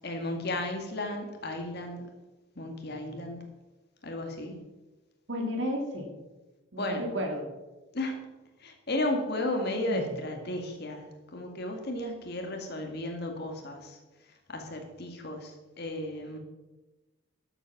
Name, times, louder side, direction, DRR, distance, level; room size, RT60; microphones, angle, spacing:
voice 1, 0.0-2.0 2.6-3.4 4.0-4.6 6.8-7.0 7.9-8.2 8.6-11.0 11.3-14.0 14.5-16.4, left 1 dB, 50° left, 3 dB, 1.9 m, -34 dB
voice 2, 5.3-6.1 6.7-7.5 9.9-10.1, equal, 55° right, 2 dB, 2.7 m, -32 dB
12.5 x 8.1 x 5.9 m, 1.1 s
head